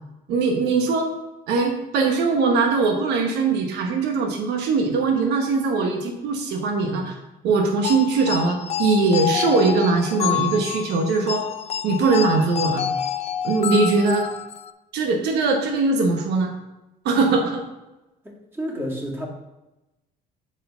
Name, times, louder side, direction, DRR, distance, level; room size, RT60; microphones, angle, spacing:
voice 1, 0.3-1.1 1.5-7.2 7.4-11.4 11.8-12.9 13.4-14.3 14.9-16.5 17.0-17.7, right 4 dB, 80° right, 3 dB, 1.1 m, -21 dB
sound 1, 7.8-14.7, left 10 dB, 40° left, 0.5 m, -28 dB
voice 2, 18.2-19.3, equal, 15° right, -2 dB, 2.2 m, -30 dB
7.5 x 4.6 x 5.6 m, 0.99 s
cardioid pair, 110°, 17 cm